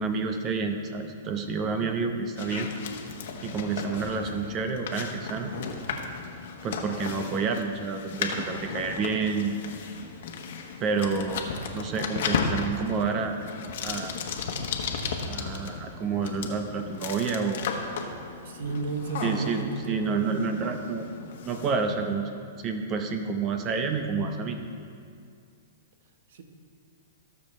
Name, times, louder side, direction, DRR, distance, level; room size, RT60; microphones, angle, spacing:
voice 1, 0.0-2.7 3.4-5.5 6.6-9.6 10.8-11.5 11.7-13.4 13.8-14.2 15.2-17.7 19.2-21.1 21.4-22.3 22.6-24.6, right 4 dB, 30° right, 6 dB, 0.8 m, -29 dB
sound 1, 2.4-22.1, left 5 dB, 65° left, 1.2 m, -35 dB
voice 2, 18.4-20.4 26.3-26.4, right 3 dB, 70° right, 6 dB, 1.2 m, -33 dB
19.0 x 6.5 x 3.3 m, 2.4 s
hypercardioid pair, 125°, 0 cm